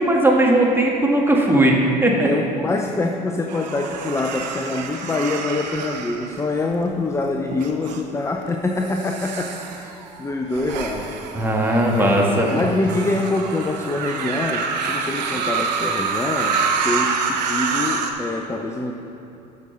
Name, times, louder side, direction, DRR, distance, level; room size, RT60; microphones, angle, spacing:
voice 1, 0.0-2.3 11.3-12.5, right 1 dB, 10° right, -1 dB, 1.8 m, -18 dB
voice 2, 2.2-11.3 11.9-16.6 16.8-18.9, left 2 dB, 15° left, 3 dB, 0.6 m, -25 dB
sound 1, 3.5-6.9 7.5-8.0 8.7-18.1, right 5 dB, 80° right, 0.8 m, -27 dB
13.5 x 6.3 x 4.0 m, 2.9 s
hypercardioid pair, 70°, 21 cm